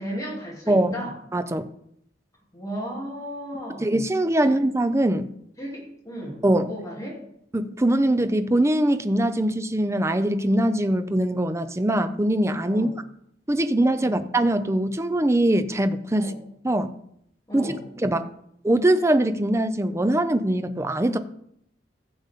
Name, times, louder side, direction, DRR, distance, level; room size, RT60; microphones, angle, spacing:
voice 1, 0.0-1.1 2.5-3.9 4.4-4.6 5.6-7.2 12.7-13.0 14.0-14.2 16.2-16.4 17.5-17.8, equal, 20° left, -3 dB, 2.8 m, -35 dB
voice 2, 0.7-1.0 1.3-1.7 3.8-5.3 6.4-6.7 7.5-12.9 13.5-16.3 16.6-16.9 17.5-18.3 18.6-21.2, right 1 dB, 15° right, 10 dB, 0.6 m, -22 dB
15.0 x 7.1 x 3.6 m, 0.73 s
head